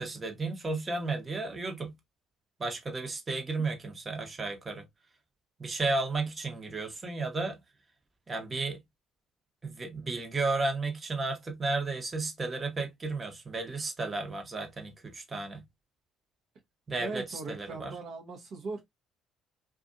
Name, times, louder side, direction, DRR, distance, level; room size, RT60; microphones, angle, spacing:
voice 1, 0.0-1.9 2.6-4.8 5.6-7.6 8.3-8.8 9.6-15.6 16.9-18.0, right 3 dB, 30° right, 0.9 m, -33 dB
voice 2, 17.0-18.9, right 4 dB, 60° right, 0.8 m, -39 dB
2.5 x 2.3 x 2.6 m
hypercardioid pair, 60°, 0 cm